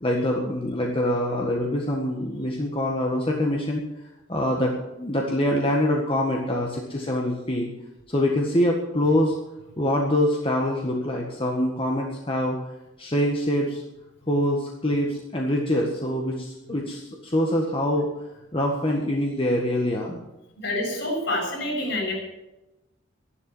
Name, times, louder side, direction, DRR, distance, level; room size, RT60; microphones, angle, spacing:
voice 1, 0.0-3.8 4.3-7.7 8.1-9.4 9.8-12.6 13.0-13.8 14.3-18.2 18.5-20.2, left 1 dB, 25° left, -1 dB, 1.7 m, -24 dB
voice 2, 20.6-22.1, left 1 dB, 60° left, -1 dB, 7.0 m, -27 dB
13.5 x 11.5 x 7.2 m, 0.96 s
head